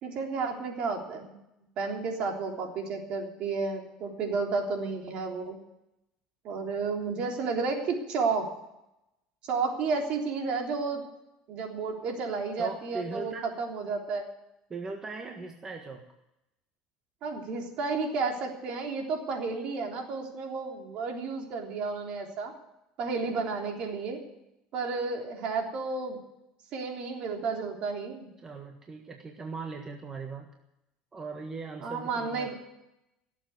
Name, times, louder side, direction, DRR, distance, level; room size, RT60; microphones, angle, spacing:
voice 1, 0.0-1.4 1.8-5.6 6.4-8.5 9.4-11.0 11.5-14.3 17.2-22.5 23.0-24.2 24.7-26.2 26.7-28.3 31.8-32.5, right 4 dB, 55° right, 2 dB, 3.5 m, -32 dB
voice 2, 12.6-13.4 14.7-16.0 28.4-30.5 31.1-32.5, right 4 dB, 25° right, 3 dB, 1.5 m, -39 dB
17.5 x 7.6 x 9.6 m, 0.89 s
supercardioid pair, 115°, 2 cm